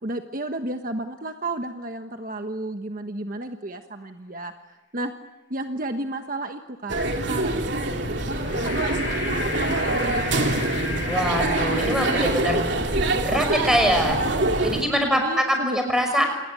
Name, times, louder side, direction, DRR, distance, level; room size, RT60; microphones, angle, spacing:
voice 1, 0.0-4.5 4.9-5.1 5.5-7.0 7.3-7.7 8.2-10.3 15.0-15.8, right 2 dB, 45° right, 6 dB, 1.3 m, -32 dB
sound 1, 6.9-14.8, right 2 dB, 65° right, 2.9 m, -25 dB
sound 2, 8.3-12.3, left 2 dB, 65° left, 7.9 m, -32 dB
voice 2, 11.1-12.6 13.2-14.2 14.6-16.2, equal, 5° right, 4 dB, 5.9 m, -23 dB
27.5 x 20.0 x 9.4 m, 1.0 s
head